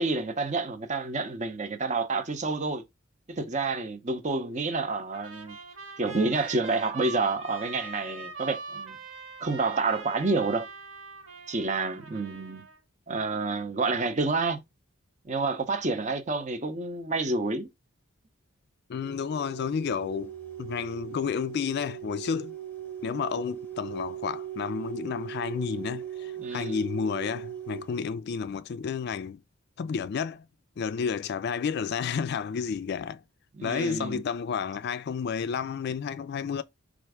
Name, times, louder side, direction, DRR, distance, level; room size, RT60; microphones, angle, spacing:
voice 1, 0.0-2.8 3.3-5.6 6.0-9.0 9.4-10.7 11.5-12.6 13.1-14.6 15.2-17.7 26.4-26.9 33.6-34.2, right 3 dB, 35° right, 0.7 m, -29 dB
Trumpet, 5.1-12.8, right 3 dB, 65° right, 1.5 m, -42 dB
voice 2, 18.9-20.3 20.6-22.6 23.0-29.4 29.8-30.4 30.8-33.2 33.6-36.6, left 6 dB, 50° left, 0.3 m, -31 dB
sound 1, 19.0-28.1, right 10 dB, 10° left, 0.9 m, -39 dB
4.4 x 2.5 x 4.8 m
head